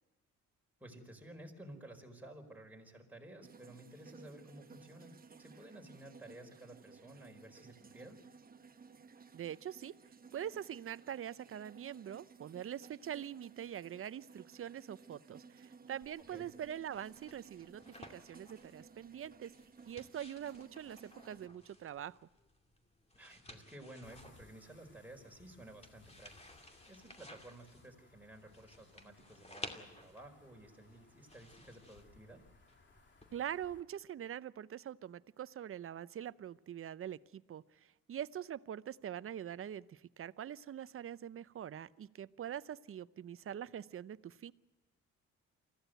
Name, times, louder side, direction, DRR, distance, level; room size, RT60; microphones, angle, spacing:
voice 1, 0.8-8.2 16.3-16.4 23.1-32.4, right 1 dB, 5° right, 1 dB, 4.7 m, -54 dB
sound 1, 3.4-21.5, right 5 dB, 30° right, 1.1 m, -58 dB
voice 2, 9.3-9.9 10.3-19.5 19.9-22.2 33.3-44.5, right 10 dB, 45° right, 17 dB, 0.7 m, -44 dB
sound 2, 16.0-33.3, left 1 dB, 20° left, 2.5 m, -56 dB
sound 3, 24.0-33.8, left 4 dB, 40° left, 3.0 m, -65 dB
24.5 x 15.5 x 9.2 m, 1.1 s
cardioid pair, 90°, 30 cm